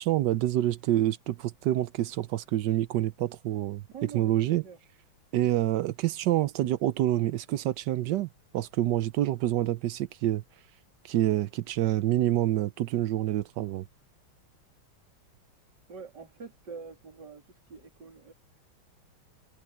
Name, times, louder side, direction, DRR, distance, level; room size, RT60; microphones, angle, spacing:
voice 1, 0.0-3.8 4.1-4.6 5.3-10.4 11.0-13.8, right 13 dB, 70° right, 1.1 m, -27 dB
voice 2, 3.9-4.8 15.9-18.3, right 5 dB, 50° right, 3.7 m, -45 dB
omnidirectional pair, 2.4 m